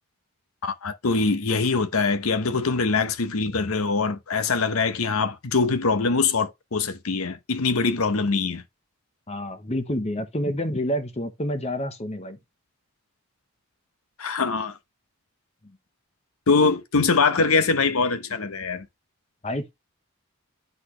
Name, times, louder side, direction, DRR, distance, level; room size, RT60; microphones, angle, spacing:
voice 1, 0.6-8.6 14.2-14.8 16.5-18.9, left 4 dB, 80° left, 0.8 m, -23 dB
voice 2, 9.3-12.4 15.6-15.8 19.4-19.7, equal, 30° left, 1.0 m, -28 dB
10.0 x 4.1 x 3.2 m
head